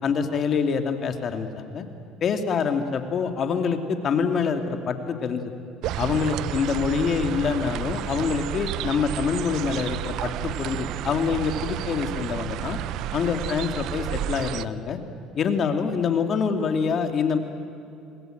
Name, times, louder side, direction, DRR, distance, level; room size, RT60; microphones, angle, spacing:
voice 1, 0.0-1.8 2.2-5.5 6.0-12.8 13.1-15.0 15.4-17.4, left 6 dB, 45° left, 6 dB, 2.7 m, -25 dB
sound 1, 5.8-14.7, right 13 dB, 65° right, 0.7 m, -31 dB
26.0 x 20.5 x 9.3 m, 2.7 s
supercardioid pair, 85°, 0 cm